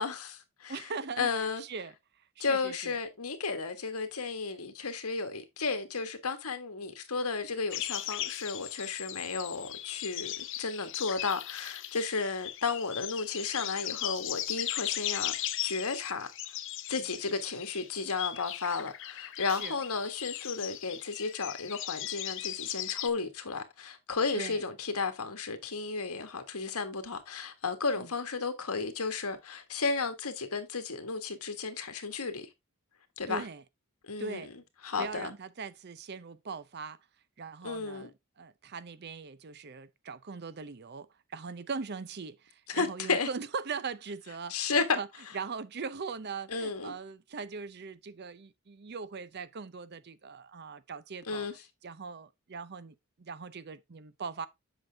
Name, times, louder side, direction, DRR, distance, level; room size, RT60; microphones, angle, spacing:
voice 1, 0.0-0.8 1.2-1.6 2.4-15.3 15.6-16.3 16.9-32.5 33.2-33.4 34.0-34.5 34.8-35.3 37.6-38.1 42.7-43.3 44.5-45.0 46.5-46.9 51.3-51.5, left 4 dB, 85° left, 1.5 m, -33 dB
voice 2, 0.7-1.9 2.4-2.9 19.5-19.8 24.3-24.6 28.0-28.1 33.3-33.6 34.2-34.5 35.0-37.0 37.4-38.1 38.4-41.1 41.3-45.1 45.3-51.5 51.8-54.5, right 5 dB, 50° right, 0.6 m, -40 dB
sound 1, 7.7-23.1, left 13 dB, 60° left, 0.7 m, -38 dB
8.0 x 5.9 x 3.4 m
head